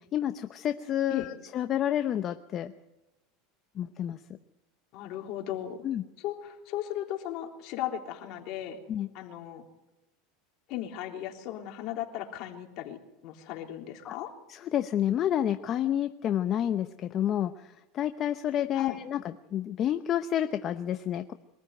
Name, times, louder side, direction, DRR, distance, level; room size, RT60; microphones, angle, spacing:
voice 1, 0.1-2.7 3.8-4.2 5.8-6.0 8.9-9.1 14.0-14.1 14.5-21.3, left 10 dB, 35° left, 8 dB, 0.8 m, -29 dB
voice 2, 4.9-5.8 6.2-8.8 9.1-9.6 10.7-13.0 13.2-14.3 18.8-19.0, left 12 dB, 55° left, 2 dB, 3.4 m, -36 dB
23.5 x 14.0 x 9.3 m, 0.99 s
supercardioid pair, 130°, 0 cm